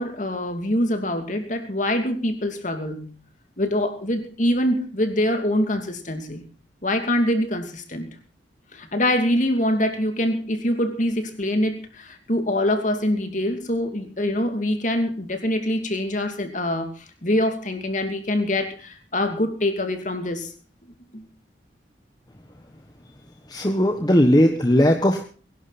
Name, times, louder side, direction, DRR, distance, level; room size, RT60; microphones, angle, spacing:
voice 1, 0.0-3.2 3.6-6.4 6.8-8.1 8.7-20.5 21.1-21.2, left 1 dB, 40° left, 6 dB, 2.8 m, -24 dB
voice 2, 23.5-25.2, equal, 20° left, 4 dB, 1.3 m, -18 dB
22.5 x 11.0 x 4.2 m, 0.39 s
head